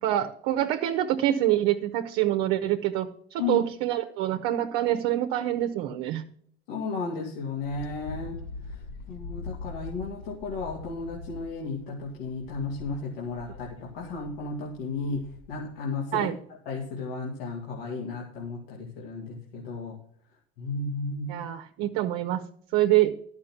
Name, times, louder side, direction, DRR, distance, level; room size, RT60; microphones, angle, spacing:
voice 1, 0.0-6.2 16.1-16.4 21.3-22.4 22.7-23.1, right 13 dB, 65° right, 6 dB, 1.1 m, -26 dB
voice 2, 6.7-8.4 8.6-8.8 9.1-16.3 16.7-20.0 20.6-21.5, left 3 dB, 85° left, -3 dB, 2.5 m, -34 dB
Wind, 7.6-15.7, left 3 dB, 60° left, 2.7 m, -42 dB
12.0 x 6.2 x 5.9 m, 0.62 s
supercardioid pair, 90°, 29 cm